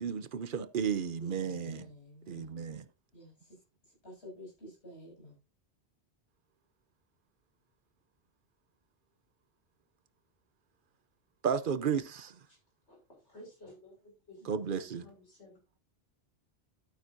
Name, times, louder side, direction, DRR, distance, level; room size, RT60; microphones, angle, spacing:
voice 1, 0.0-1.9 2.3-2.9 11.4-12.4 14.4-15.1, right 7 dB, 55° right, 0.9 m, -33 dB
voice 2, 1.2-2.6 3.1-3.6 4.0-5.4, equal, 70° left, 6.7 m, -50 dB
voice 3, 13.2-15.6, left 1 dB, 90° left, 6.5 m, -54 dB
11.5 x 9.2 x 2.6 m
omnidirectional pair, 1.1 m